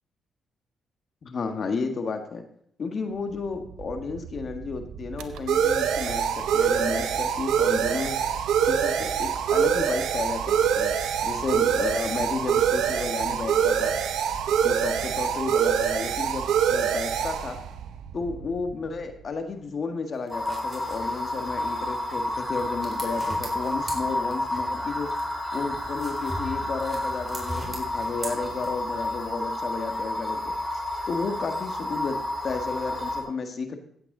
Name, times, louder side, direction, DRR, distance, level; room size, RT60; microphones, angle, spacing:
voice 1, 1.2-2.4 2.8-8.2 8.7-10.9 11.2-13.9 14.6-17.6 18.1-25.1 25.5-30.5 31.1-32.2 32.4-33.8, left 4 dB, 55° left, 7 dB, 1.6 m, -32 dB
sound 1, 3.6-19.0, right 8 dB, 80° right, 0.8 m, -25 dB
sound 2, 20.1-24.7 25.0-29.0, right 2 dB, 30° right, 3.9 m, -44 dB
sound 3, 20.3-33.2, left 1 dB, 5° left, 4.3 m, -30 dB
15.5 x 8.2 x 3.9 m, 0.65 s
supercardioid pair, 60°, 0 cm